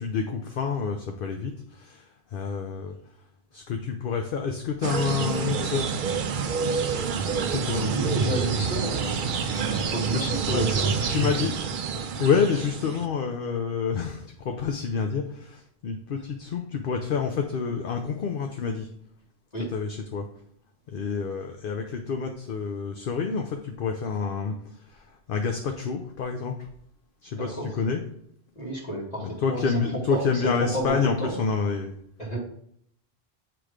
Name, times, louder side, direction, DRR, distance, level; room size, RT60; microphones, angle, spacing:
voice 1, 0.0-2.9 3.5-6.0 7.4-7.8 9.6-11.6 11.9-18.9 19.7-20.3 20.9-26.7 27.2-28.0 29.2-32.0, left 5 dB, 60° left, 4 dB, 0.8 m, -28 dB
sound 1, 4.8-13.1, right 5 dB, 60° right, 0.7 m, -27 dB
voice 2, 7.7-9.2 9.6-11.1 19.5-19.7 27.3-27.7 28.5-29.7 30.1-31.4 32.2-32.4, right 1 dB, 40° left, -4 dB, 1.7 m, -31 dB
7.8 x 3.1 x 4.9 m, 0.68 s
omnidirectional pair, 1.1 m